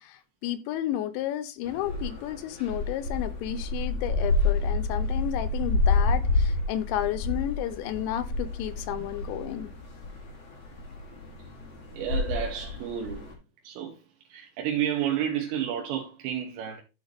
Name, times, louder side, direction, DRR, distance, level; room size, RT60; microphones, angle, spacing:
voice 1, 0.0-9.7, left 12 dB, 90° left, 3.0 m, -32 dB
sound 1, 1.6-13.3, left 3 dB, 45° left, 1.8 m, -29 dB
voice 2, 11.9-13.3 13.6-14.0 14.3-16.8, right 10 dB, 80° right, 3.2 m, -31 dB
13.0 x 4.4 x 3.3 m
omnidirectional pair, 5.2 m